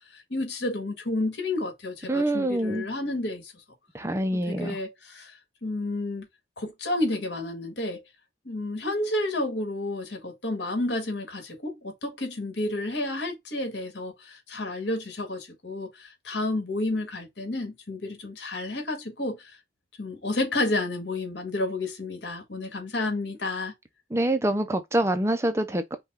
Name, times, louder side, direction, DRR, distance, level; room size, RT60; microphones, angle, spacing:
voice 1, 0.1-3.5 4.5-5.3 5.6-6.3 6.6-8.0 8.5-19.6 20.0-23.7, left 2 dB, 70° left, 1.8 m, -31 dB
voice 2, 2.1-2.9 3.9-4.8 24.1-26.0, right 1 dB, 15° right, 0.5 m, -25 dB
5.6 x 2.3 x 3.6 m
head